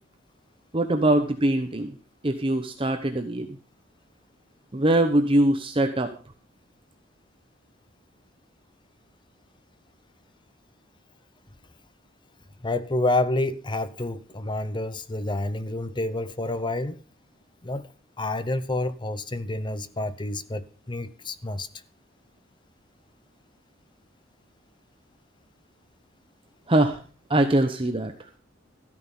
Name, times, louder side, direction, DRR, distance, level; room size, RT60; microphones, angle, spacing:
voice 1, 0.7-1.9 2.2-3.5 4.7-6.1 26.7-27.0 27.3-28.1, right 1 dB, 30° right, 1.0 m, -22 dB
voice 2, 12.6-17.0 17.6-17.9 18.2-21.7, left 2 dB, 25° left, 0.8 m, -28 dB
13.5 x 9.7 x 5.4 m
head